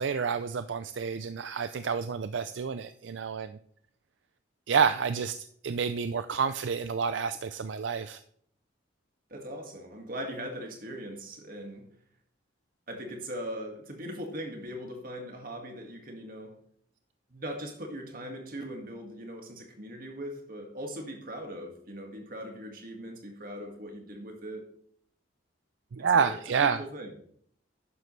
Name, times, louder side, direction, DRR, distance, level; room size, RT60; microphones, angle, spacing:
voice 1, 0.0-3.6 4.7-5.4 5.6-8.2 25.9-26.8, right 6 dB, 70° right, 11 dB, 0.4 m, -29 dB
voice 2, 9.3-11.9 12.9-16.6 17.3-24.7 26.1-27.1, equal, 45° right, 2 dB, 2.0 m, -40 dB
11.5 x 9.3 x 3.3 m, 0.64 s
head